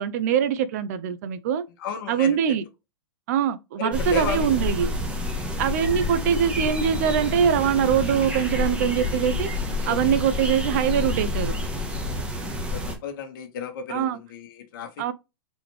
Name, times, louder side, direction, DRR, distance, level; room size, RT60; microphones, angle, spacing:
voice 1, 0.0-1.6 2.1-2.6 3.3-4.9 5.6-9.5 9.9-11.6 13.9-14.2 15.0-15.1, right 8 dB, 40° right, 0.4 m, -23 dB
voice 2, 1.8-2.4 3.8-4.5 9.8-10.2 12.7-15.1, left 5 dB, 50° left, 1.3 m, -33 dB
sound 1, 3.9-13.0, left 2 dB, 10° right, 0.8 m, -28 dB
4.0 x 3.0 x 3.0 m
supercardioid pair, 165°, 14 cm